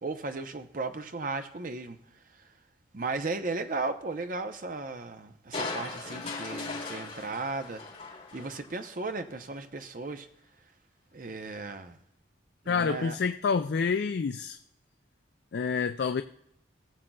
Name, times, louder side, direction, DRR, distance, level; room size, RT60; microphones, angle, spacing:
voice 1, 0.0-2.0 2.9-7.8 8.3-10.3 11.1-12.0 12.6-13.2, right 3 dB, 45° right, 0.7 m, -35 dB
Crushing, 5.5-8.9 9.3-9.4, left 3 dB, 35° left, 3.1 m, -38 dB
voice 2, 12.7-14.6 15.5-16.2, left 5 dB, 55° left, 0.3 m, -28 dB
19.0 x 7.5 x 2.3 m
head